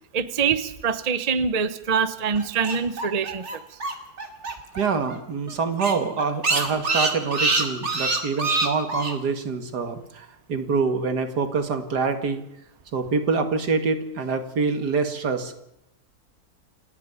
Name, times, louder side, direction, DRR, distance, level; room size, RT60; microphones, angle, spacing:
voice 1, 0.1-3.6, right 6 dB, 30° right, 13 dB, 0.9 m, -24 dB
sound 1, 2.4-4.8 5.1-5.2 5.5-5.6 5.8-9.1, right 3 dB, 45° right, 2.6 m, -25 dB
voice 2, 4.8-12.4 12.9-15.5, right 4 dB, 85° right, 8 dB, 2.5 m, -25 dB
28.5 x 9.6 x 9.6 m, 0.85 s
omnidirectional pair, 1.7 m